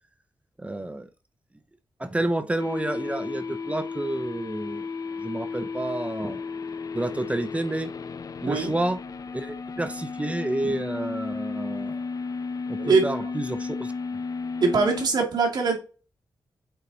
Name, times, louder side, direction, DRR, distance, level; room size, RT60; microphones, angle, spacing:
voice 1, 0.6-1.1 2.0-4.9 5.2-6.4 6.9-7.9 8.4-9.0 9.3-12.0 12.7-13.9, right 1 dB, 15° right, 0.7 m, -29 dB
sound 1, 2.6-15.1, left 4 dB, 55° left, 0.5 m, -34 dB
voice 2, 12.8-13.3 14.6-15.8, right 4 dB, 70° right, 2.3 m, -22 dB
8.1 x 4.1 x 4.0 m
cardioid pair, 80°, 7 cm